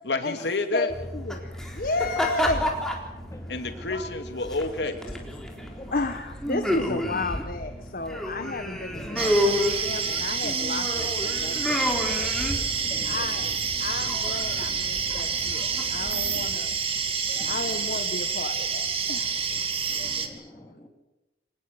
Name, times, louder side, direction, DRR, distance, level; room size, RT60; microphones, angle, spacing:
voice 1, 0.0-0.9 3.5-5.0 5.4-5.9, left 3 dB, 75° left, 7 dB, 2.4 m, -30 dB
sound 1, 0.9-16.5, left 1 dB, 5° left, 3.9 m, -31 dB
voice 2, 1.1-2.8 3.9-4.1 5.9-12.3 13.0-13.5 13.8-16.7 17.4-19.4 20.4-20.5, left 3 dB, 55° left, 7 dB, 1.4 m, -33 dB
voice 3, 3.3-3.8 5.8-5.9 9.2-9.3 12.1-13.6 14.0-14.1 15.5-16.0 16.3-16.4 17.3-18.0 19.5-19.6 19.9-20.9, left 1 dB, 20° left, 3 dB, 3.1 m, -46 dB
sound 2, 9.2-20.3, right 6 dB, 35° right, 2.3 m, -28 dB
25.5 x 19.0 x 8.0 m, 1.0 s
head